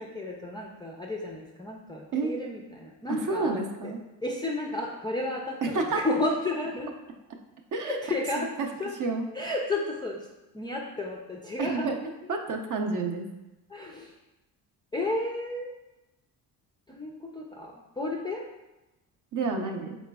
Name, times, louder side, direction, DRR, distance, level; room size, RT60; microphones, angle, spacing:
voice 1, 0.0-3.9 4.2-6.9 7.8-8.5 8.8-8.9 9.3-10.3 10.5-12.1 13.7-14.1 14.9-15.7 16.9-18.5, left 2 dB, 10° left, -1 dB, 0.3 m, -32 dB
voice 2, 3.1-4.0 5.6-6.0 7.7-8.0 8.4-8.7 9.0-9.3 11.6-12.0 12.3-13.3 19.3-20.0, right 3 dB, 45° right, 3 dB, 0.6 m, -29 dB
4.1 x 3.7 x 2.2 m, 1.0 s
supercardioid pair, 80°, 42 cm